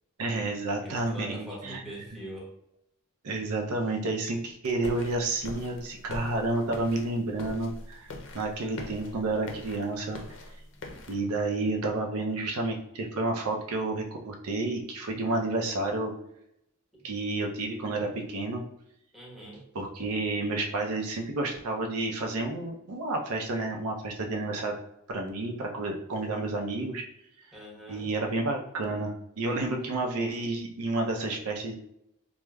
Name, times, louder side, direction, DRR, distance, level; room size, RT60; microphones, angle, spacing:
voice 1, 0.2-1.8 3.2-8.1 8.3-10.2 11.1-16.1 17.0-18.6 19.7-24.7 25.1-27.0 27.9-31.7, right 2 dB, 80° right, 1 dB, 0.5 m, -30 dB
voice 2, 0.8-2.5 19.1-19.6 27.5-28.1, equal, ahead, -4 dB, 0.9 m, -42 dB
sound 1, 4.8-11.2, left 2 dB, 60° left, 0.5 m, -43 dB
4.7 x 2.0 x 2.2 m, 0.79 s
head